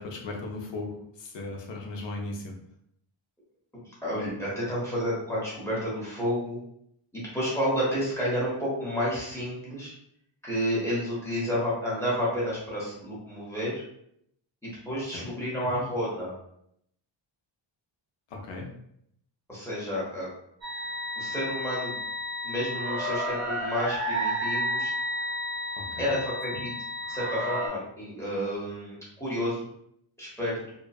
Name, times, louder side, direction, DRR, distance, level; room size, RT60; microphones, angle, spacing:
voice 1, 0.0-2.6 15.1-15.3 15.7-15.8 18.3-18.7 25.8-26.1 26.5-26.6, left 2 dB, 65° left, 1 dB, 0.6 m, -37 dB
voice 2, 3.7-6.6 7.1-9.9 10.4-13.8 14.6-16.3 19.5-20.3 21.2-21.9 22.4-24.9 26.0-26.7 27.1-29.7 30.2-30.6, equal, 5° left, -8 dB, 0.9 m, -30 dB
sound 1, 20.6-27.7, equal, 65° right, 1.2 m, -31 dB
2.7 x 2.3 x 2.3 m, 0.73 s
wide cardioid pair, 150°, 48 cm